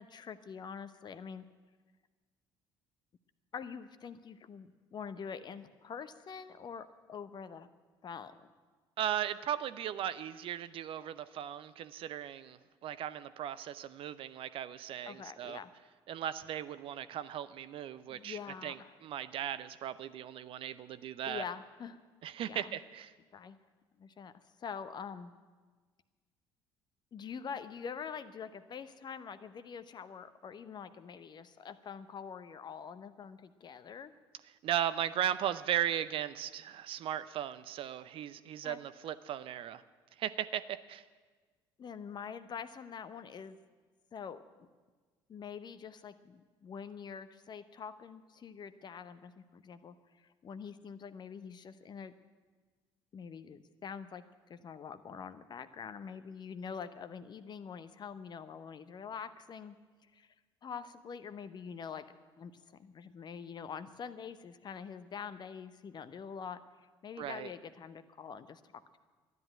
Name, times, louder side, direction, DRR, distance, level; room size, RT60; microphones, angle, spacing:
voice 1, 0.0-1.4 3.5-7.7 8.0-8.5 15.0-15.7 18.1-19.0 21.3-22.0 22.5-22.8 23.3-23.6 24.0-24.3 24.6-25.3 27.1-34.1 38.6-38.8 41.8-43.6 44.1-44.7 45.3-52.1 53.1-59.8 60.1-60.3 60.6-66.6 67.0-69.0, left 6 dB, 35° left, 12 dB, 0.8 m, -45 dB
voice 2, 9.0-15.6 16.1-18.8 19.0-21.4 22.2-23.1 34.6-39.8 40.2-40.6 40.9-41.0 67.2-67.5, right 11 dB, 45° right, 14 dB, 0.6 m, -37 dB
12.5 x 10.5 x 8.9 m, 1.4 s
figure-of-eight pair, 55°, 12 cm